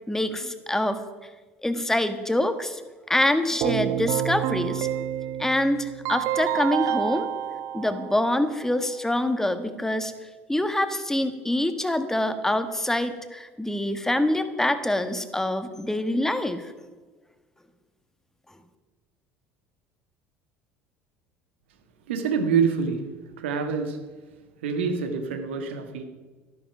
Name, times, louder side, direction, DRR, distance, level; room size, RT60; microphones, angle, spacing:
voice 1, 0.1-1.0 1.6-2.8 3.1-4.9 5.4-7.3 7.7-10.1 10.5-16.7, left 1 dB, 5° left, 10 dB, 1.5 m, -25 dB
Keyboard (musical), 3.6-8.6, right 11 dB, 50° right, 0.6 m, -28 dB
voice 2, 22.1-23.0 23.4-24.0 24.6-26.0, right 6 dB, 70° right, 6 dB, 1.9 m, -26 dB
13.5 x 13.0 x 6.1 m, 1.3 s
figure-of-eight pair, 65°, 7 cm